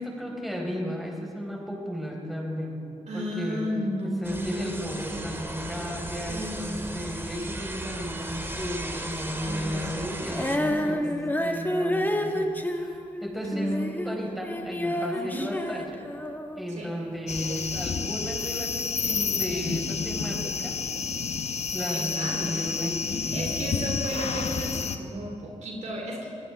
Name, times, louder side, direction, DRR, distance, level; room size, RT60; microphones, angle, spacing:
voice 1, 0.0-2.8 3.1-3.6 4.0-13.7 14.0-16.0 16.5-20.8 21.7-23.6, equal, ahead, -2 dB, 5.0 m, -34 dB
voice 2, 3.1-5.2 6.3-6.9 9.4-10.3 10.6-11.0 13.4-14.4 15.1-15.5 16.7-16.9 21.9-22.7 23.1-26.3, equal, 65° right, 0 dB, 2.9 m, -34 dB
sound 1, 4.2-10.6, right 1 dB, 20° right, 2.0 m, -36 dB
Female singing, 10.3-16.7 17.3-17.4, left 1 dB, 15° left, 1.6 m, -29 dB
sound 2, 17.3-25.0, left 5 dB, 60° left, 0.9 m, -30 dB
24.0 x 16.0 x 3.6 m, 2.6 s
cardioid pair, 55°, 13 cm